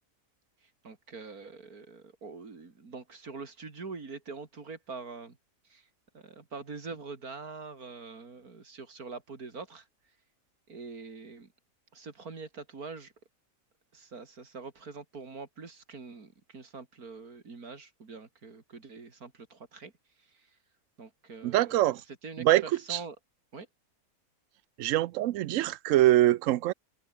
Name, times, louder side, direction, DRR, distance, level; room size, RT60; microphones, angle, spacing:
voice 1, 0.6-5.4 5.6-5.9 6.1-9.9 10.7-11.5 11.9-13.1 13.9-19.9 20.2-20.6 21.0-23.2 23.5-23.7, right 4 dB, 85° right, 3.4 m, -44 dB
voice 2, 21.4-22.0 22.4-22.6 22.9-23.0 24.8-26.7, right 14 dB, 70° right, 0.9 m, -24 dB
omnidirectional pair, 1.5 m